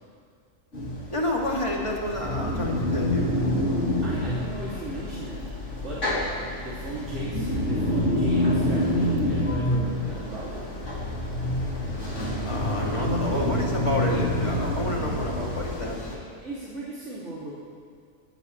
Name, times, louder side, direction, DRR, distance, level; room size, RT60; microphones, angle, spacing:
sound 1, 0.7-16.2, left 1 dB, 65° left, 3.4 m, -27 dB
voice 1, 1.1-3.4 12.5-16.0, left 1 dB, 25° left, -3 dB, 2.7 m, -29 dB
voice 2, 4.0-5.4 5.8-10.6 16.1-17.5, right 2 dB, 60° right, -8 dB, 3.0 m, -37 dB
21.5 x 19.0 x 3.2 m, 2.2 s
omnidirectional pair, 1.4 m